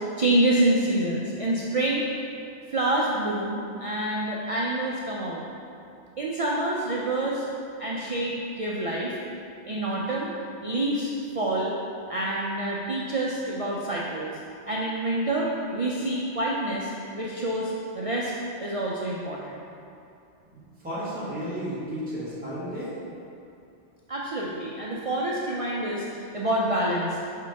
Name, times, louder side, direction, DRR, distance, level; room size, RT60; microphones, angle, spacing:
voice 1, 0.2-2.1 2.7-5.4 6.2-7.5 7.8-9.2 9.6-10.3 10.6-11.7 12.1-14.3 14.7-16.9 17.2-18.3 18.6-19.6 24.1-27.2, right 1 dB, 50° right, -4 dB, 0.4 m, -27 dB
voice 2, 20.5-22.9, equal, 10° right, -11 dB, 1.4 m, -33 dB
5.8 x 4.6 x 3.5 m, 2.6 s
omnidirectional pair, 1.2 m